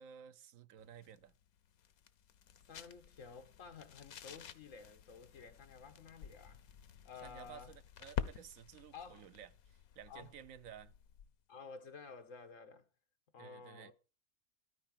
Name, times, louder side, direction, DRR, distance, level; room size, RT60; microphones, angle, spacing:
voice 1, 0.0-1.3 7.2-10.9 13.4-13.9, right 9 dB, 70° right, 1.1 m, -54 dB
sound 1, 0.8-11.4, left 8 dB, 85° left, 1.3 m, -49 dB
voice 2, 2.7-6.6 7.1-7.7 8.9-9.3 10.1-10.3 11.5-12.8 13.3-13.9, left 5 dB, 65° left, 1.7 m, -53 dB
13.0 x 4.9 x 7.4 m
omnidirectional pair, 1.5 m